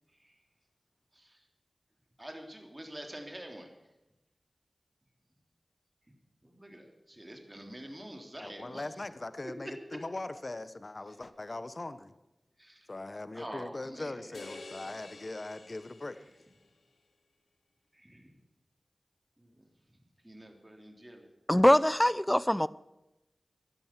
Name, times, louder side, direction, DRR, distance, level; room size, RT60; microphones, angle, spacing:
voice 1, 2.2-3.7 6.4-8.8 12.6-12.9 13.3-14.3 17.9-18.3 19.4-19.5 20.2-21.3, right 1 dB, 20° right, 3 dB, 3.3 m, -46 dB
voice 2, 8.4-12.1 12.9-16.2, left 2 dB, 50° left, 13 dB, 1.0 m, -40 dB
sound 1, 14.3-16.7, left 3 dB, 90° left, 1.7 m, -49 dB
voice 3, 21.5-22.7, left 1 dB, 10° left, 19 dB, 0.5 m, -23 dB
15.5 x 11.0 x 7.4 m, 0.96 s
cardioid pair, 45°, 0 cm